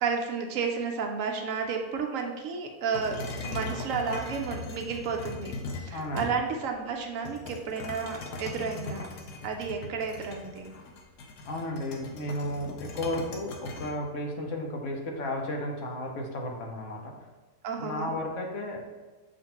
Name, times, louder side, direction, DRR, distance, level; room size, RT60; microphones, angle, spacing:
voice 1, 0.0-5.5 5.8-9.1 9.4-10.7 17.6-18.1, right 5 dB, 70° right, 2 dB, 0.9 m, -32 dB
sound 1, 2.9-6.6 7.3-13.9, left 3 dB, 85° left, 1.1 m, -39 dB
voice 2, 5.9-6.4 11.4-17.1 17.8-18.8, left 1 dB, 60° left, 1 dB, 1.0 m, -33 dB
7.2 x 2.5 x 2.9 m, 1.3 s
omnidirectional pair, 1.6 m